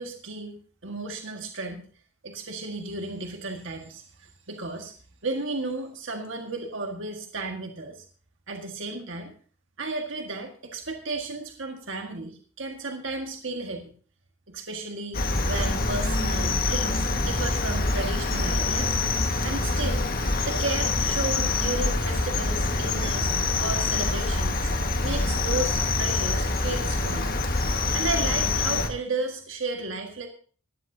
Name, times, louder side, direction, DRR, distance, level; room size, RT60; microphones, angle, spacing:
voice 1, 0.0-1.8 2.2-4.9 5.2-8.0 8.5-9.3 9.8-13.9 14.5-19.0 19.4-20.0 20.5-23.3 23.6-24.7 25.0-27.4 27.9-30.3, right 3 dB, 65° right, 3 dB, 1.7 m, -33 dB
Cricket, 15.1-28.9, left 3 dB, 45° left, 1.7 m, -25 dB
19.0 x 14.0 x 2.8 m, 0.42 s
head